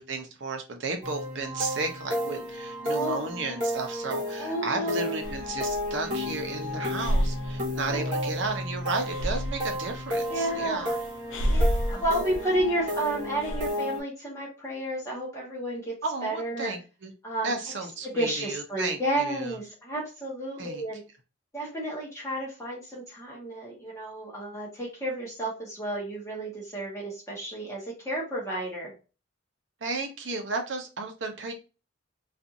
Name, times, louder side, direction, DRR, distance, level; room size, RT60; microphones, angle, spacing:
voice 1, 0.0-10.9 11.9-12.2 16.0-17.1 17.4-19.6 20.6-20.8 29.8-31.5, right 3 dB, 70° right, 3 dB, 0.7 m, -33 dB
sound 1, 1.0-14.0, left 1 dB, 45° right, 1.0 m, -33 dB
voice 2, 2.9-3.2 4.4-5.1 7.8-8.3 10.3-11.0 11.5-16.0 16.2-16.7 17.2-17.5 18.1-21.0 21.5-28.9, right 1 dB, 15° left, -4 dB, 0.9 m, -31 dB
Breathing, 5.2-13.7, equal, 85° left, 0.5 m, -32 dB
2.5 x 2.4 x 2.7 m, 0.32 s
head